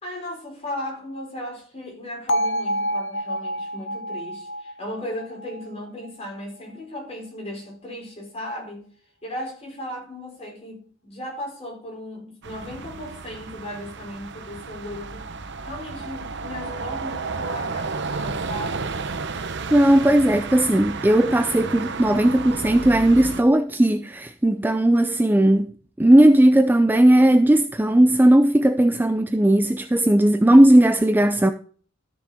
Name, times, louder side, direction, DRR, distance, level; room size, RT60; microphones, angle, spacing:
voice 1, 0.0-8.9 9.2-15.3 15.6-19.2, left 1 dB, 30° left, 4.6 m, -36 dB
Bell, 2.3-6.4, equal, 65° left, 0.8 m, -28 dB
sound 1, 12.4-23.4, right 4 dB, 60° right, 0.9 m, -32 dB
voice 2, 19.7-25.7 26.0-31.5, right 1 dB, 10° right, 0.4 m, -17 dB
13.5 x 6.3 x 3.6 m
head